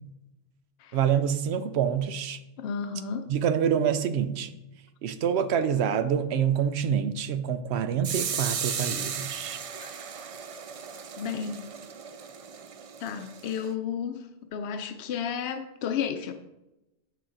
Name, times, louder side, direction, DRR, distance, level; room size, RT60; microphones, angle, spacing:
voice 1, 0.9-2.4 3.3-4.5 5.0-9.6, right 8 dB, 85° right, 11 dB, 0.9 m, -26 dB
voice 2, 2.6-3.3 9.8-9.9 11.2-11.7 13.0-16.3, left 7 dB, 75° left, 6 dB, 0.8 m, -32 dB
sound 1, 8.0-13.7, right 7 dB, 50° right, 0.4 m, -35 dB
7.7 x 6.6 x 3.8 m, 0.94 s
omnidirectional pair, 1.1 m